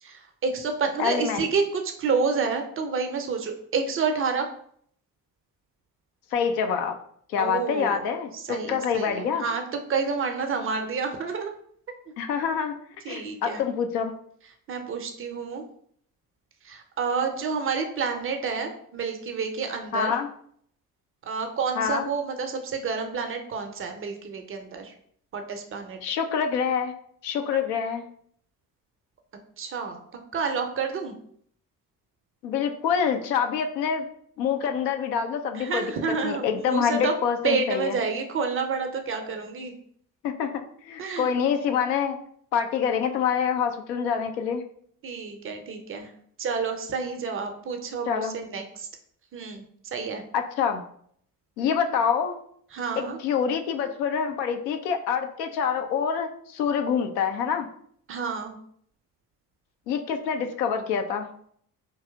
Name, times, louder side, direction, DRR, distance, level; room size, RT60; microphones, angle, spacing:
voice 1, 0.0-4.5 7.4-8.0 8.3-9.6 9.9-11.5 13.0-13.6 14.7-15.6 16.6-20.2 21.2-24.9 25.3-26.0 29.6-30.0 30.3-31.1 35.5-37.1 37.4-39.7 41.0-41.3 45.0-46.1 46.4-48.9 49.3-49.6 49.9-50.2 52.7-53.2 58.1-58.6, right 5 dB, 30° right, 5 dB, 0.5 m, -29 dB
voice 2, 1.0-1.5 6.3-7.0 7.3-9.4 12.2-12.8 13.1-14.1 19.9-20.3 21.8-22.1 26.0-26.9 27.2-28.0 32.4-34.1 34.4-35.9 36.2-38.0 40.2-40.5 40.8-42.2 42.5-44.6 48.1-48.4 50.3-50.8 51.6-52.4 53.0-57.7 59.9-61.3, left 7 dB, 75° left, 6 dB, 0.6 m, -26 dB
4.6 x 2.8 x 2.2 m, 0.64 s
figure-of-eight pair, 50°, 49 cm